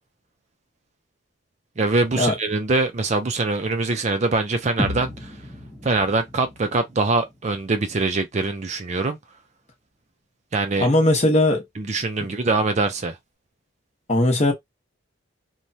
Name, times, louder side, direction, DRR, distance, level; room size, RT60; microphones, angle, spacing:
voice 1, 1.8-5.3 5.8-9.2 10.5-10.9 11.8-13.2, right 3 dB, 35° right, 0.4 m, -23 dB
sound 1, 4.8-8.8, left 1 dB, ahead, 0.7 m, -35 dB
voice 2, 10.8-11.6 14.1-14.5, left 1 dB, 30° left, 0.9 m, -18 dB
3.1 x 2.2 x 2.7 m
head